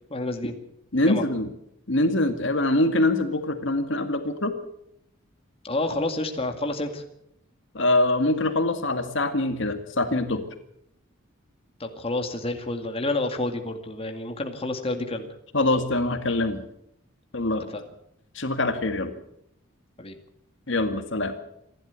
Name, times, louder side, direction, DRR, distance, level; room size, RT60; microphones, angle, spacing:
voice 1, 0.1-0.6 1.1-1.2 5.6-7.0 11.8-15.3 17.7-17.8 20.0-20.2, left 2 dB, 30° left, 5 dB, 2.2 m, -29 dB
voice 2, 0.9-1.5 1.9-4.5 7.7-10.4 15.5-16.6 17.3-17.7 18.4-19.1 20.7-21.3, left 2 dB, 60° left, 7 dB, 2.0 m, -24 dB
27.5 x 12.0 x 8.2 m, 0.76 s
head